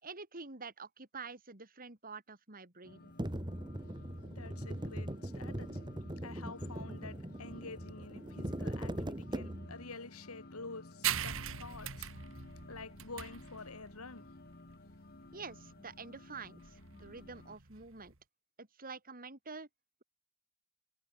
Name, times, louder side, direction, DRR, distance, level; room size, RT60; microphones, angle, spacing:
voice 1, 0.0-3.1 15.3-18.1 18.6-19.7, right 4 dB, 40° right, 3.6 m, -48 dB
sound 1, 2.8-17.6, left 2 dB, 45° left, 1.9 m, -55 dB
sound 2, 3.2-9.9, right 1 dB, 20° right, 2.0 m, -40 dB
voice 2, 4.3-5.9 6.1-12.1 12.7-14.3, left 3 dB, 80° left, 3.0 m, -49 dB
sound 3, 11.0-18.2, right 9 dB, 65° right, 2.1 m, -41 dB
head